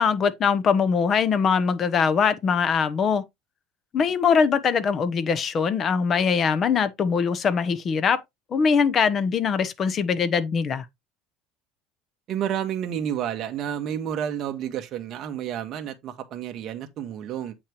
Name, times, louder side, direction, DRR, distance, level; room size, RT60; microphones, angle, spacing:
voice 1, 0.0-3.2 3.9-8.2 8.5-10.8, left 6 dB, 30° left, 0.9 m, -22 dB
voice 2, 12.3-17.5, right 9 dB, 40° right, 1.5 m, -30 dB
8.4 x 5.8 x 3.0 m
cardioid pair, 155°, 0 cm